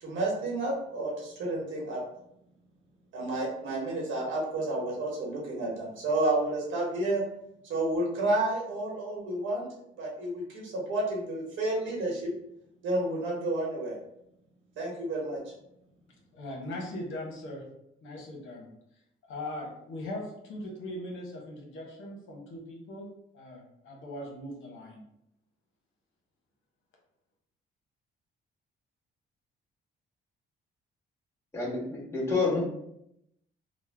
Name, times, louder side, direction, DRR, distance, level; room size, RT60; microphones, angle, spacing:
voice 1, 0.0-2.0 3.1-7.2 7.6-9.7 10.0-12.3 12.8-14.0 14.8-15.4, right 2 dB, 80° right, -2 dB, 1.1 m, -30 dB
voice 2, 16.3-17.6 18.0-18.7 19.3-25.0, left 1 dB, 80° left, -1 dB, 1.0 m, -40 dB
voice 3, 31.5-32.6, left 4 dB, 15° left, -7 dB, 1.4 m, -28 dB
3.1 x 2.1 x 3.3 m, 0.78 s
cardioid pair, 90°, 20 cm